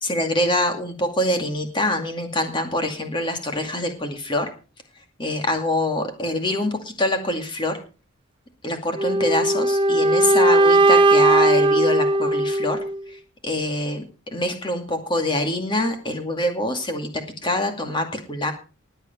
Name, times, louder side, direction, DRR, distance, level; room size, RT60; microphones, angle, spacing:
voice 1, 0.0-4.5 5.2-7.8 8.6-12.8 13.1-14.0 14.3-17.1 17.4-18.5, left 1 dB, 25° left, 5 dB, 2.3 m, -25 dB
sound 1, 9.0-13.0, right 2 dB, 25° right, 0.7 m, -18 dB
20.0 x 8.2 x 4.4 m, 0.34 s
head